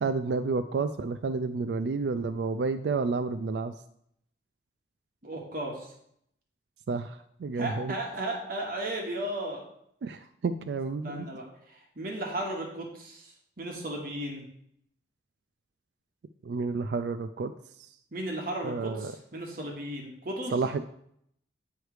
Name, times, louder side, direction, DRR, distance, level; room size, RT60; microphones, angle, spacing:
voice 1, 0.0-3.7 6.9-7.9 10.0-11.3 16.4-17.5 18.6-19.1 20.5-20.8, right 4 dB, 65° right, 10 dB, 0.3 m, -30 dB
voice 2, 5.2-5.9 7.5-9.7 11.0-14.5 18.1-20.6, right 1 dB, 50° right, 0 dB, 1.3 m, -35 dB
9.1 x 3.2 x 4.9 m, 0.72 s
head